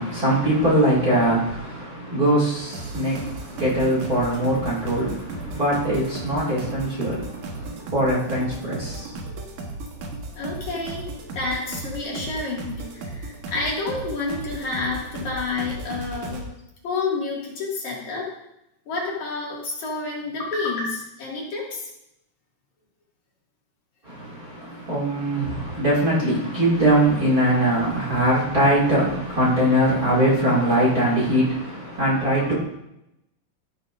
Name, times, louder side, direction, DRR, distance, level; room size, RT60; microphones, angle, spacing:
voice 1, 0.0-9.2 24.0-32.5, right 1 dB, 30° right, 2.5 m, -22 dB
sound 1, 2.7-16.5, right 2 dB, 70° right, 2.7 m, -35 dB
voice 2, 10.4-16.4 16.8-18.3 18.9-21.9, left 3 dB, 60° left, 3.4 m, -29 dB
13.5 x 10.0 x 2.6 m
omnidirectional pair, 3.8 m